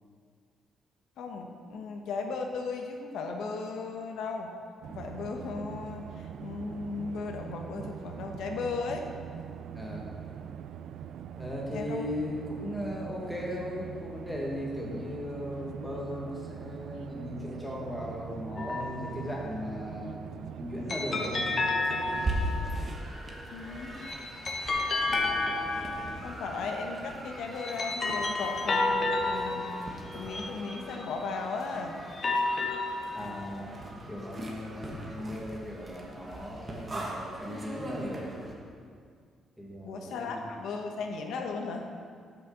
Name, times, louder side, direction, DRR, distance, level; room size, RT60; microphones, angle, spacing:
voice 1, 1.2-4.5 4.9-9.1 11.7-12.0 23.5-23.9 26.2-29.7 30.1-32.0 39.8-41.9, left 4 dB, 70° left, 3 dB, 0.9 m, -36 dB
sound 1, 4.8-23.0, right 9 dB, 60° right, 0.3 m, -43 dB
voice 2, 9.7-10.1 11.3-20.3 20.6-21.5 33.1-38.4 39.6-40.4, left 1 dB, ahead, -3 dB, 1.6 m, -37 dB
sound 2, 18.6-19.3 20.9-22.9 23.8-26.6 27.3-31.4 32.0-33.6, left 3 dB, 25° left, 0.8 m, -31 dB
sound 3, 21.4-38.5, right 1 dB, 20° right, 1.2 m, -40 dB
8.1 x 6.3 x 6.9 m, 2.1 s
cardioid pair, 175°, 0 cm